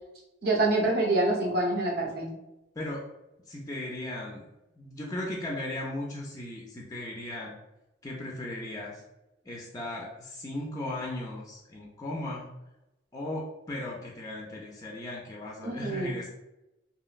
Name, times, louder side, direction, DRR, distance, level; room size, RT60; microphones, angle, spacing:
voice 1, 0.4-2.3 15.6-16.1, right 2 dB, 50° right, 0 dB, 0.6 m, -26 dB
voice 2, 3.5-4.4 4.8-7.6 8.0-9.0 9.5-12.5 13.1-16.3, left 1 dB, 15° left, -2 dB, 0.3 m, -37 dB
2.9 x 2.8 x 2.4 m, 0.95 s
head